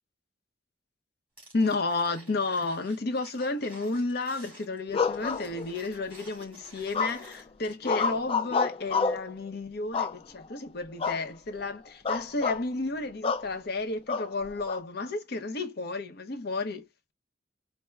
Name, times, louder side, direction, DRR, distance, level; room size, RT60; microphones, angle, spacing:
sound 1, 1.4-8.0 8.3-8.4, right 2 dB, 10° right, 2.0 m, -52 dB
voice 1, 1.5-16.8, left 3 dB, 60° left, 0.7 m, -32 dB
sound 2, 4.9-6.0 6.9-7.4 7.8-9.3 9.9-10.5 11.0-11.3 11.6-11.7 12.1-12.6 13.2-13.5 14.1-14.8, left 5 dB, 30° left, 0.4 m, -29 dB
4.3 x 2.1 x 2.3 m
head